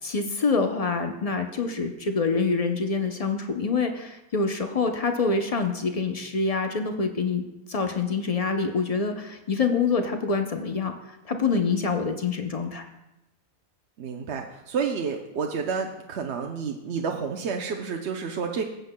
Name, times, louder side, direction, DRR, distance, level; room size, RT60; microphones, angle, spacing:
voice 1, 0.0-12.9, left 4 dB, 50° left, 5 dB, 0.4 m, -26 dB
voice 2, 14.0-18.6, right 5 dB, 60° right, 2 dB, 0.8 m, -30 dB
17.5 x 7.9 x 2.2 m, 0.93 s
omnidirectional pair, 1.5 m